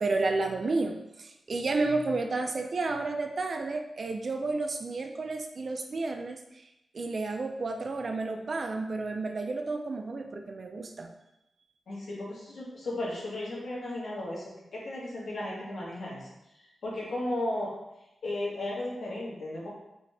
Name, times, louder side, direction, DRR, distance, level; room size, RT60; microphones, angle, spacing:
voice 1, 0.0-6.6 6.9-11.1, right 3 dB, 40° right, 4 dB, 0.3 m, -31 dB
voice 2, 11.9-16.3 16.8-17.7 18.2-19.7, left 1 dB, 70° left, -5 dB, 1.3 m, -35 dB
4.1 x 2.7 x 3.3 m, 0.89 s
wide cardioid pair, 160°, 0 cm